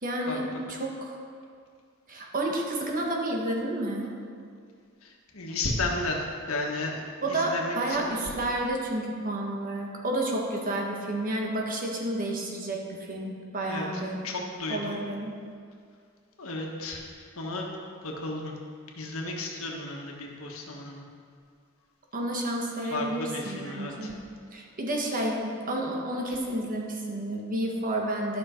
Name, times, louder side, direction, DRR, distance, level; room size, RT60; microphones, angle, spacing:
voice 1, 0.0-1.2 2.1-4.1 7.2-14.2 14.7-15.3 22.1-24.2 24.5-28.4, right 1 dB, 40° right, 0 dB, 1.4 m, -30 dB
voice 2, 5.0-7.0 7.3-8.1 13.6-13.9 14.2-15.0 16.4-17.0 17.3-18.6 18.9-21.0 22.9-24.1, left 2 dB, 90° left, 0 dB, 1.4 m, -33 dB
13.0 x 6.1 x 4.4 m, 2.2 s
head